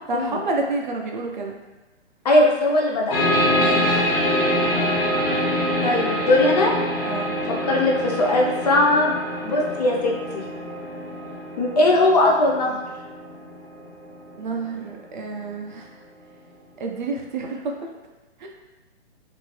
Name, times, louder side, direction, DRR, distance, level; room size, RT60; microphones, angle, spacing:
voice 1, 0.1-1.6 3.5-4.1 7.0-7.3 14.4-15.9 16.8-17.9 18.4-18.5, right 3 dB, 45° right, 1 dB, 0.4 m, -29 dB
voice 2, 2.2-3.2 5.8-6.7 7.5-10.4 11.6-12.8, left 2 dB, 35° left, -1 dB, 0.5 m, -20 dB
sound 1, 3.1-14.3, equal, 60° left, 1.0 m, -25 dB
2.8 x 2.6 x 3.0 m, 1.2 s
hypercardioid pair, 145°, 34 cm